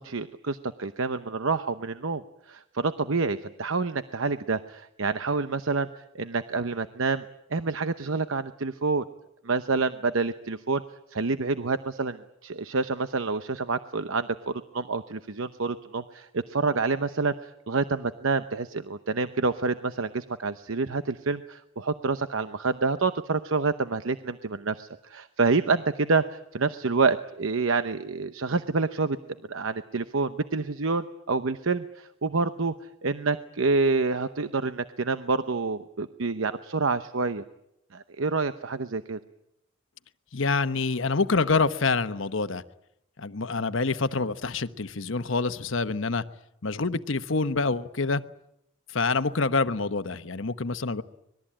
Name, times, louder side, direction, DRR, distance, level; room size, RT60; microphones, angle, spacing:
voice 1, 0.0-2.2 2.5-5.9 6.1-7.2 7.5-9.0 9.4-10.8 11.1-29.2 29.5-32.7 33.0-37.4 37.9-39.2, right 4 dB, 75° right, 11 dB, 0.9 m, -28 dB
voice 2, 40.3-42.6 43.2-46.2 46.6-48.2 48.9-51.0, left 3 dB, 65° left, 12 dB, 1.0 m, -26 dB
25.5 x 20.5 x 8.8 m, 0.82 s
head